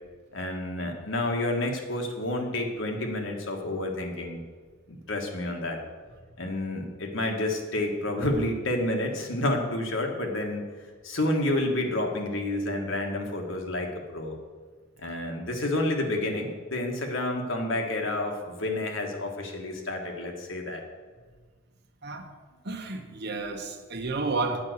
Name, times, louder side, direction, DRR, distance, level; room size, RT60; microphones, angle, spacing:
voice 1, 0.3-4.4 4.9-5.8 6.4-10.6 11.0-14.4 15.0-20.8, left 1 dB, 70° left, 1.6 m, -29 dB
voice 2, 22.6-24.6, right 3 dB, 55° right, 1.1 m, -31 dB
8.9 x 5.7 x 7.9 m
head